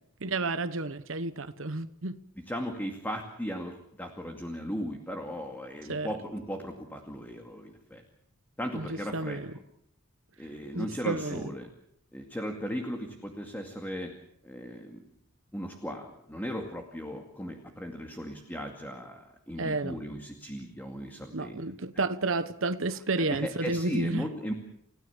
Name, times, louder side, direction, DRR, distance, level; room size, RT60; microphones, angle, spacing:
voice 1, 0.2-2.2 5.9-6.2 8.8-9.5 10.7-11.5 19.6-20.0 21.3-24.3, right 3 dB, 65° right, 1.1 m, -31 dB
voice 2, 2.5-8.0 8.6-9.4 10.4-11.7 12.1-14.1 14.4-15.0 15.5-21.6 23.2-24.5, equal, 10° left, 2.3 m, -37 dB
30.0 x 16.5 x 7.3 m
head